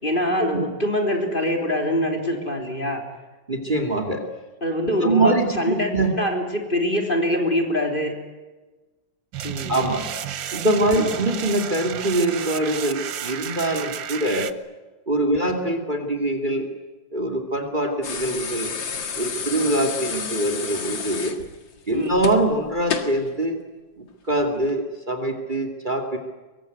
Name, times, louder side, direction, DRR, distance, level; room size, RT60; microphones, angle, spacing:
voice 1, 0.0-3.0 4.6-8.1 9.4-9.8 11.0-11.1 15.3-15.5 21.9-22.1, left 1 dB, 25° left, 3 dB, 3.8 m, -24 dB
voice 2, 3.5-4.2 5.0-6.1 9.7-10.1 10.5-14.5 15.1-16.7 17.1-18.7 19.2-21.4 21.9-23.6 24.0-26.2, right 1 dB, 25° right, 5 dB, 2.8 m, -23 dB
sound 1, 9.3-14.5, right 9 dB, 85° right, 1.8 m, -32 dB
sound 2, 18.0-23.2 24.6-24.7, left 6 dB, 85° left, 2.7 m, -31 dB
24.5 x 23.5 x 9.4 m, 1.2 s
omnidirectional pair, 2.0 m